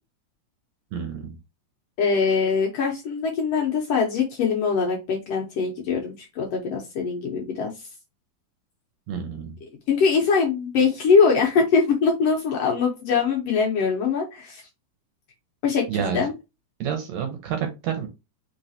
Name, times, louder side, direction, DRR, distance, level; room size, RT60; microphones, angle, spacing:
voice 1, 0.9-1.4 9.1-9.6 15.9-16.2 16.8-18.1, right 8 dB, 70° right, 5 dB, 1.9 m, -29 dB
voice 2, 2.0-7.7 9.6-14.6 15.6-16.3, left 5 dB, 65° left, 1 dB, 1.7 m, -22 dB
4.8 x 3.7 x 2.7 m, 0.25 s
omnidirectional pair, 3.6 m